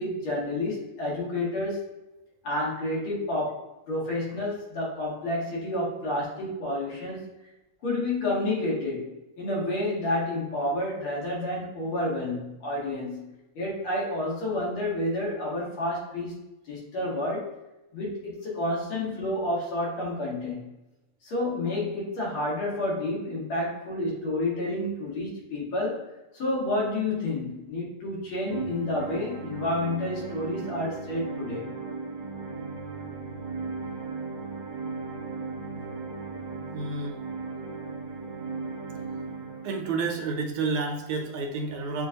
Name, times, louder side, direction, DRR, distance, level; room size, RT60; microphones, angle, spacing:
voice 1, 0.0-1.9 2.4-7.3 7.8-16.4 16.7-17.5 17.9-20.7 21.2-26.1 26.3-31.7, left 1 dB, 80° left, -5 dB, 2.5 m, -30 dB
sound 1, 28.5-40.4, right 4 dB, 60° right, 0.5 m, -37 dB
voice 2, 36.7-37.2 39.6-42.1, right 4 dB, 75° right, 3 dB, 1.5 m, -30 dB
7.1 x 2.4 x 2.8 m, 0.97 s
omnidirectional pair, 2.3 m